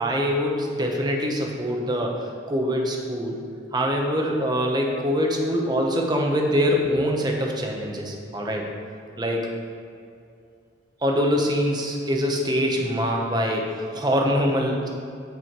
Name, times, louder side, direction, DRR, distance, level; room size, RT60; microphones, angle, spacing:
voice 1, 0.0-3.4 3.7-8.7 9.2-9.5 11.0-14.9, equal, 20° right, 0 dB, 1.0 m, -24 dB
14.0 x 4.9 x 4.7 m, 2.4 s
head